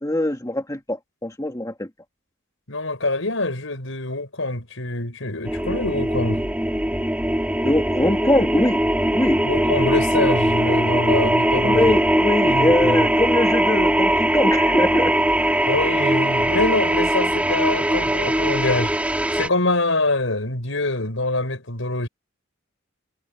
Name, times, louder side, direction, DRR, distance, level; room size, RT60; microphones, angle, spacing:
voice 1, 0.0-1.9 7.6-8.8 9.1-9.4 11.6-15.1 15.4-15.5, left 1 dB, 15° left, 2.0 m, -22 dB
voice 2, 2.7-6.5 9.4-12.0 12.4-13.1 15.7-18.9 19.3-22.1, left 2 dB, 70° left, 6.1 m, -25 dB
sound 1, 5.4-19.5, right 1 dB, 5° right, 2.9 m, -20 dB
head